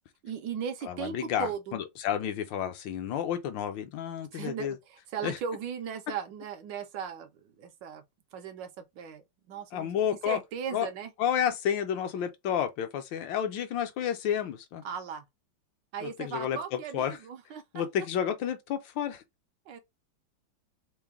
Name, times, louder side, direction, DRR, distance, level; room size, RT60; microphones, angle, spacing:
voice 1, 0.2-1.8 4.3-7.3 7.6-8.0 8.3-9.2 9.5-11.1 14.8-15.2 15.9-17.8 19.7-19.8, right 7 dB, 75° right, 1.2 m, -37 dB
voice 2, 0.8-4.8 5.2-5.4 9.7-10.4 10.7-10.9 11.2-14.8 16.0-17.2 17.7-19.2, left 9 dB, 75° left, 1.3 m, -31 dB
3.8 x 2.1 x 3.5 m
omnidirectional pair, 2.1 m